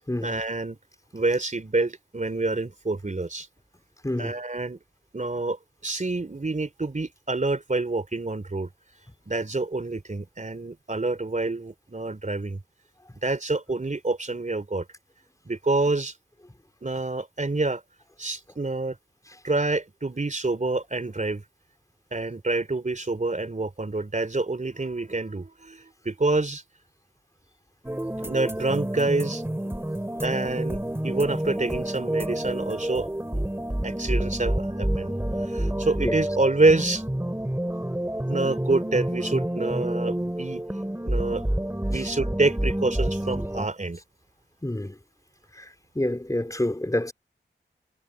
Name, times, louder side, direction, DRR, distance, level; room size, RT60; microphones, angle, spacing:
voice 1, 0.2-0.8 1.1-3.5 4.2-4.8 5.1-5.6 5.8-8.7 9.3-12.6 13.2-14.8 15.5-16.1 16.8-17.8 18.2-18.9 19.4-21.4 22.1-25.8 26.1-26.6 28.2-29.4 30.2-30.8 31.0-33.1 33.3-33.4 33.8-35.1 35.5-37.0 38.3-40.6 41.1-41.4 41.9-44.0, right 2 dB, 40° right, 3.4 m, -27 dB
sound 1, 27.8-43.7, right 1 dB, 10° right, 4.0 m, -29 dB
voice 2, 44.6-45.0 45.6-45.7 45.9-47.1, left 1 dB, 15° left, 4.1 m, -28 dB
cardioid pair, 55°, 19 cm